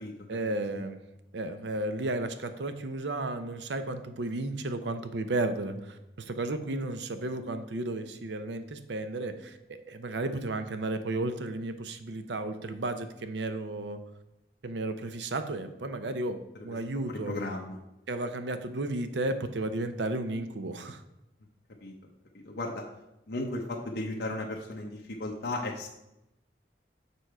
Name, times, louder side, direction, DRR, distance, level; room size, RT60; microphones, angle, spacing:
voice 1, 0.3-1.0 1.3-14.0 14.6-17.4 18.1-21.0, right 2 dB, 80° right, 9 dB, 0.7 m, -33 dB
voice 2, 17.1-17.8 21.8-21.9 22.5-22.8 23.3-25.9, left 2 dB, 65° left, -1 dB, 0.8 m, -35 dB
6.9 x 4.6 x 4.8 m, 0.89 s
head